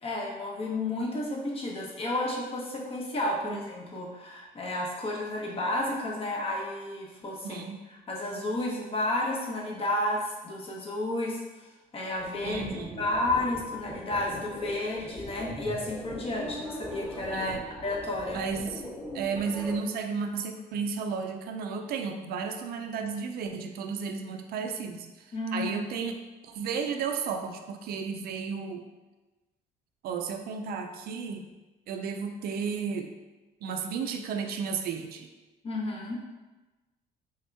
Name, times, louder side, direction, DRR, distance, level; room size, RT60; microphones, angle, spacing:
voice 1, 0.0-7.6 8.1-11.4 11.9-12.6 13.0-17.5 17.8-18.4 25.3-25.9 35.6-36.2, left 1 dB, 35° left, -2 dB, 0.9 m, -31 dB
voice 2, 7.4-7.8 12.4-13.0 17.3-17.6 18.3-18.8 19.1-28.9 30.0-31.5 31.9-33.1 33.6-35.3, right 5 dB, 65° right, 5 dB, 0.4 m, -33 dB
sound 1, 12.2-19.8, equal, 5° left, 1.1 m, -41 dB
3.5 x 2.8 x 3.3 m, 1.1 s
cardioid pair, 110°, 17 cm